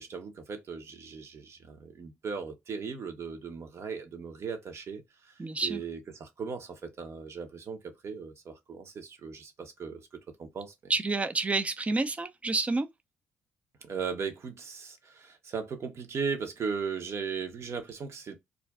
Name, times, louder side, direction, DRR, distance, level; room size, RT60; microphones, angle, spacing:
voice 1, 0.0-5.3 5.6-10.1 10.4-10.9 13.8-18.4, right 5 dB, 55° right, 0.9 m, -37 dB
voice 2, 5.4-5.8 10.9-12.9, right 3 dB, 25° right, 0.5 m, -29 dB
2.5 x 2.2 x 3.4 m
supercardioid pair, 65°, 6 cm